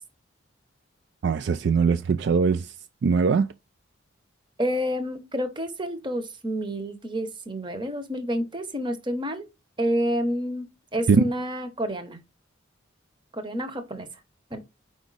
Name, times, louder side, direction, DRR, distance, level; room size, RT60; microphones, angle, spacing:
voice 1, 1.2-2.7 3.0-3.5 11.1-11.2, right 5 dB, 60° right, 0.3 m, -21 dB
voice 2, 4.6-9.5 9.8-10.7 10.9-12.2 13.3-14.1 14.5-14.6, equal, 25° right, 0.9 m, -29 dB
5.1 x 4.8 x 3.9 m
head